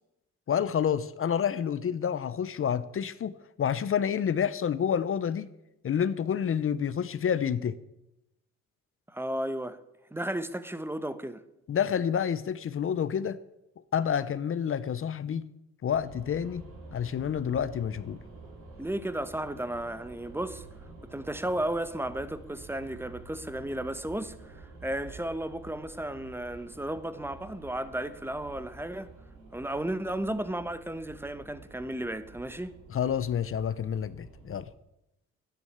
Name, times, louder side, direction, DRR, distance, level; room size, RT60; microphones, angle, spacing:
voice 1, 0.5-3.3 3.6-5.5 5.8-7.8 11.7-13.4 13.9-15.5 15.8-16.6 16.9-18.2 32.9-34.7, left 8 dB, 45° left, 0.7 m, -28 dB
voice 2, 9.1-9.8 10.1-11.4 18.8-20.6 21.0-29.1 29.5-32.8, right 1 dB, 10° right, 1.1 m, -34 dB
sound 1, 15.9-34.7, right 3 dB, 90° right, 3.7 m, -49 dB
10.5 x 9.4 x 8.7 m
cardioid pair, 90°, 30 cm